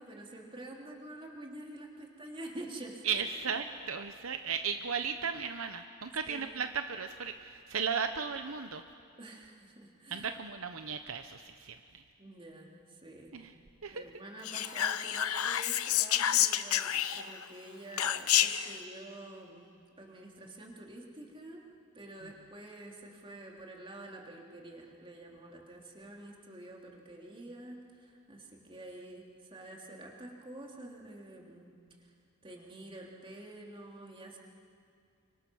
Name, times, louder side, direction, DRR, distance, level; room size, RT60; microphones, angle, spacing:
voice 1, 0.0-3.2 6.3-6.5 9.2-10.3 12.2-13.4 13.9-19.7 20.0-21.6 21.9-31.7 32.4-34.4, right 1 dB, 25° right, -1 dB, 3.3 m, -48 dB
voice 2, 3.0-8.8 10.1-12.0 13.3-13.5 13.8-14.0, right 6 dB, 65° right, 8 dB, 0.9 m, -35 dB
Whispering, 14.4-17.4 18.0-18.7, left 11 dB, 75° left, 0.9 m, -29 dB
30.0 x 25.0 x 6.3 m, 2.3 s
head